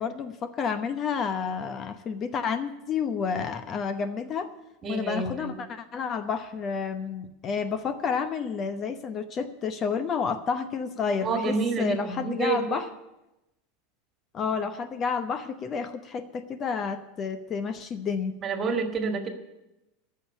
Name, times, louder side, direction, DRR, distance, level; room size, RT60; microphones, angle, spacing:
voice 1, 0.0-4.5 4.9-12.9 14.3-18.3, left 6 dB, 35° left, 12 dB, 0.8 m, -30 dB
voice 2, 4.8-5.5 11.2-12.8 18.4-19.3, right 4 dB, 30° right, 6 dB, 1.8 m, -28 dB
14.0 x 6.6 x 9.6 m, 0.94 s
figure-of-eight pair, 80°, 0 cm